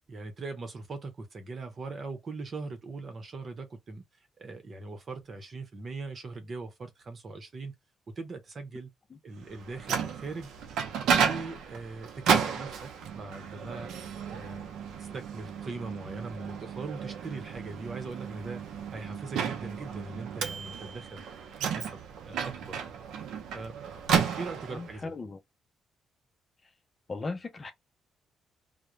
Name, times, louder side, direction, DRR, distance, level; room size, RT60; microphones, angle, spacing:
voice 1, 0.1-4.0 4.4-7.8 8.2-8.9 9.2-14.0 14.3-14.6 15.0-18.6 18.9-21.2 21.6-22.8 23.5-23.8 24.4-25.1, right 3 dB, 45° right, 0.8 m, -40 dB
Microwave oven, 9.5-25.0, right 7 dB, 80° right, 0.5 m, -33 dB
voice 2, 24.7-25.4 26.6-26.7 27.1-27.7, left 3 dB, 30° left, 0.5 m, -37 dB
2.3 x 2.1 x 3.0 m
cardioid pair, 90°, 0 cm